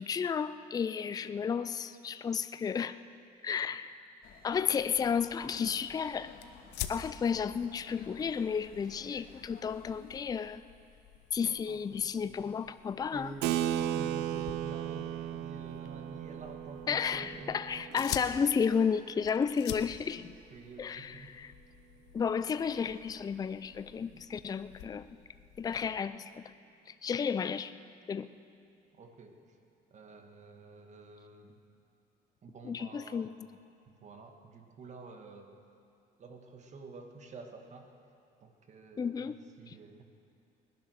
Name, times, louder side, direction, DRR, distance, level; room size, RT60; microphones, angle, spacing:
voice 1, 0.0-3.0 3.4-3.9 4.4-6.3 6.9-10.6 11.3-13.3 16.9-20.3 20.8-21.5 22.1-25.1 25.6-26.5 26.9-27.7 28.1-28.3 32.6-33.3 39.0-39.4 39.7-39.8, left 6 dB, 20° left, 13 dB, 0.4 m, -32 dB
sound 1, 4.2-10.2, left 6 dB, 60° left, 1.7 m, -55 dB
sound 2, 6.4-26.0, left 11 dB, 85° left, 0.9 m, -48 dB
voice 2, 11.4-12.5 13.1-18.2 20.5-21.4 28.9-29.4 29.9-31.6 32.4-33.3 33.9-35.6 36.2-37.9 38.4-40.0, right 3 dB, 45° right, 4 dB, 1.7 m, -49 dB
Keyboard (musical), 13.4-19.4, right 11 dB, 90° right, 0.7 m, -36 dB
20.0 x 10.5 x 6.4 m, 2.6 s
cardioid pair, 110°, 17 cm